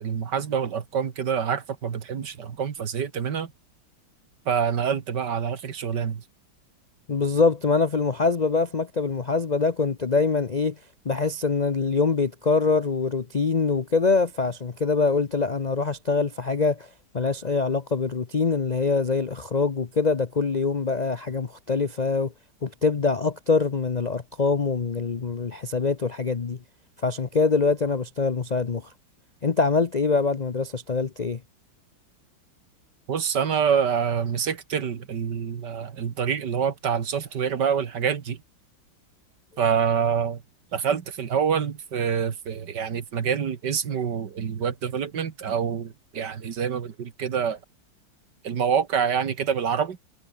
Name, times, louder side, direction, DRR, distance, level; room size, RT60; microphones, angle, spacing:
voice 1, 0.0-3.5 4.5-6.2 33.1-38.4 39.6-40.4 40.7-47.6 48.4-50.0, right 7 dB, 60° right, 2.2 m, -26 dB
voice 2, 7.1-10.8 11.0-22.3 22.6-26.6 27.0-28.9 29.4-31.4, left 4 dB, 60° left, 0.4 m, -24 dB
omnidirectional pair, 2.1 m